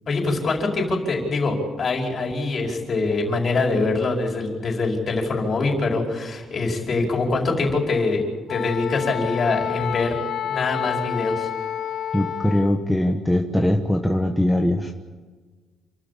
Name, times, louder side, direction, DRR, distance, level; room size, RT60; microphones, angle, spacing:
voice 1, 0.1-8.2 8.5-10.1 10.5-11.5, left 3 dB, 35° left, 0 dB, 5.2 m, -24 dB
Wind instrument woodwind instrument, 8.5-12.8, left 9 dB, 50° left, 1.1 m, -29 dB
voice 2, 12.1-14.9, left 1 dB, ahead, 1 dB, 1.2 m, -21 dB
28.5 x 13.0 x 8.6 m, 1.4 s
cardioid pair, 155°, 0 cm